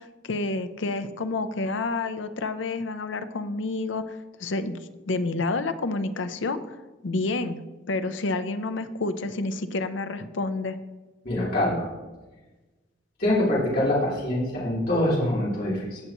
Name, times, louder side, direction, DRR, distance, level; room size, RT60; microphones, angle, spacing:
voice 1, 0.0-6.8 7.0-10.8, left 3 dB, 75° left, 11 dB, 0.6 m, -29 dB
voice 2, 11.2-11.9 13.2-16.0, left 1 dB, 50° left, -7 dB, 3.6 m, -24 dB
17.0 x 6.7 x 3.1 m, 1.2 s
head